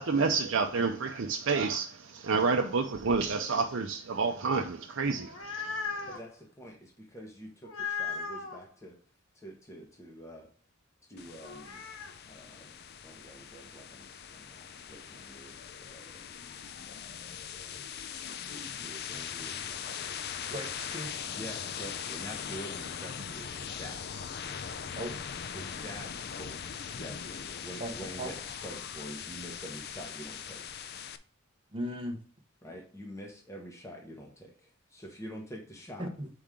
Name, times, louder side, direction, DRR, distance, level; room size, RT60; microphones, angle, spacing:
voice 1, 0.0-6.1, right 4 dB, 65° right, 0.6 m, -29 dB
sound 1, 5.1-6.2 7.6-8.6 11.4-12.1, left 5 dB, 70° left, 1.0 m, -37 dB
voice 2, 6.1-9.0 9.3-10.5 11.1-11.8 12.3-12.7 13.0-15.6 15.8-16.3 16.9-17.9 18.5-20.2 21.3-24.1 25.5-26.6 26.9-30.6 32.6-36.1, equal, 15° left, 1.1 m, -47 dB
sound 2, 11.2-31.2, left 7 dB, 50° left, 0.5 m, -40 dB
voice 3, 20.5-21.1 24.9-25.2 27.8-28.3 31.7-32.2 36.0-36.3, equal, 25° right, 0.8 m, -37 dB
7.1 x 4.8 x 3.7 m
head